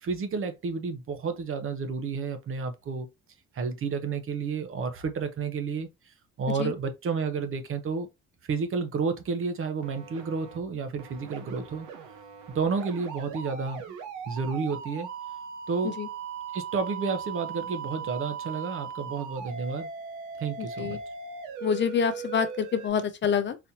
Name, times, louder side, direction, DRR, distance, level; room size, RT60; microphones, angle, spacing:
voice 1, 0.0-3.1 3.5-5.9 6.4-8.1 8.5-11.9 12.5-13.9 14.3-15.1 15.7-16.0 16.5-19.9 20.4-21.0, right 5 dB, 45° right, 0.8 m, -31 dB
sound 1, 9.8-10.6 11.0-22.9, right 6 dB, 85° right, 0.9 m, -39 dB
voice 2, 20.6-21.0 21.6-23.6, left 7 dB, 40° left, 0.5 m, -27 dB
4.1 x 2.7 x 2.8 m
cardioid pair, 125°, 30 cm